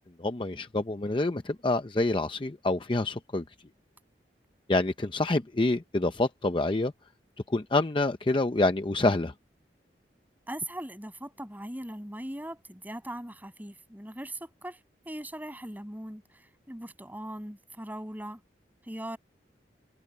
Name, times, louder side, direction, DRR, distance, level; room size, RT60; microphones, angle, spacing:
voice 1, 0.2-3.4 4.7-6.9 7.5-9.3, left 2 dB, 30° left, 0.6 m, -27 dB
voice 2, 10.5-14.8 15.0-18.4 18.8-19.2, right 1 dB, 10° right, 6.6 m, -40 dB
head